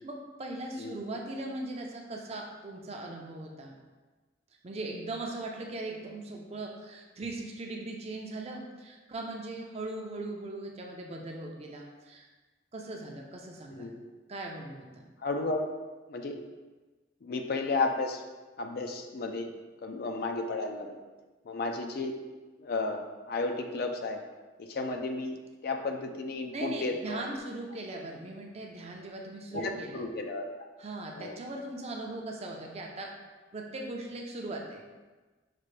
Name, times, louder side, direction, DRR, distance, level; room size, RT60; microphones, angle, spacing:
voice 1, 0.0-3.8 4.6-12.3 12.7-13.9 14.3-15.1 26.5-30.0 30.8-33.1 33.5-34.8, right 2 dB, 35° right, 1 dB, 0.5 m, -39 dB
voice 2, 13.7-14.0 15.2-15.6 16.1-16.4 17.2-18.2 18.6-19.5 19.8-21.0 21.4-22.2 22.6-24.2 24.6-25.4 25.6-27.2 29.5-30.7 31.2-31.3, left 3 dB, 55° left, 4 dB, 0.4 m, -33 dB
5.9 x 2.5 x 3.2 m, 1.3 s
head